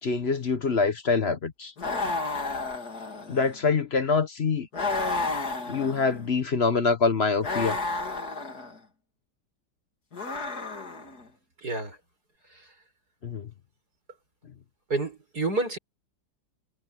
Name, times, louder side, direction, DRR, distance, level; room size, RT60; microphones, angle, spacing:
voice 1, 0.0-1.7 3.3-4.7 5.7-7.8 13.2-13.5, left 4 dB, 40° left, 1.2 m, -25 dB
sound 1, 1.8-3.6 4.7-6.3 7.4-8.8 10.1-11.2, left 3 dB, 55° left, 3.6 m, -31 dB
voice 2, 11.6-12.0 14.9-15.8, right 3 dB, 55° right, 7.1 m, -28 dB
omnidirectional pair, 2.0 m